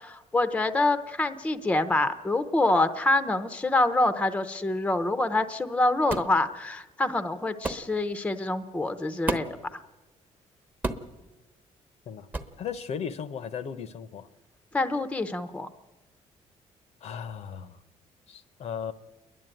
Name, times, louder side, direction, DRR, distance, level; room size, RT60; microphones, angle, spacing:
voice 1, 0.3-9.5 14.7-15.7, left 2 dB, 10° left, 11 dB, 0.7 m, -26 dB
sound 1, 6.1-6.4 7.6-7.9 9.3-9.6 10.8-11.2 12.3-12.6, right 2 dB, 15° right, 1.0 m, -31 dB
voice 2, 12.6-14.3 17.0-17.8 18.3-18.9, left 7 dB, 60° left, 13 dB, 0.8 m, -36 dB
28.5 x 11.0 x 9.0 m, 1.1 s
cardioid pair, 165°, 13 cm